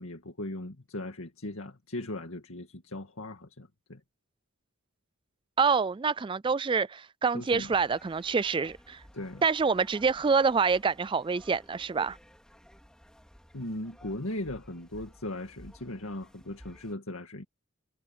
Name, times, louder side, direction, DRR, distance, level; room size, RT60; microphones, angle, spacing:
voice 1, 0.0-4.0 7.3-7.7 9.1-9.4 13.5-17.4, left 1 dB, 75° left, 2.0 m, -38 dB
voice 2, 5.6-9.0 9.4-12.2, right 5 dB, 25° right, 0.3 m, -26 dB
sound 1, 7.5-16.9, equal, 5° left, 5.0 m, -55 dB
head